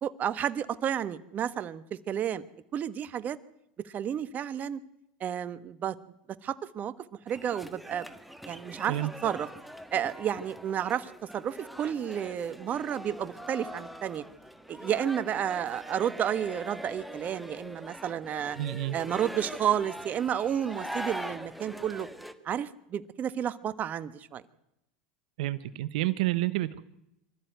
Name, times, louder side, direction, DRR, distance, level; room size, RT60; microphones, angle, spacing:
voice 1, 0.0-2.4 2.7-3.4 3.8-4.8 5.2-6.0 6.4-6.9 7.3-8.1 8.5-9.0 9.2-9.5 9.9-14.2 14.7-18.6 18.9-22.1 22.4-24.4, right 9 dB, 40° right, 15 dB, 1.3 m, -31 dB
sound 1, 7.3-22.3, equal, ahead, 1.7 m, -42 dB
voice 2, 18.6-19.0 25.4-26.8, right 16 dB, 75° right, 14 dB, 0.9 m, -29 dB
24.5 x 13.5 x 9.3 m, 0.83 s
hypercardioid pair, 95°, 4 cm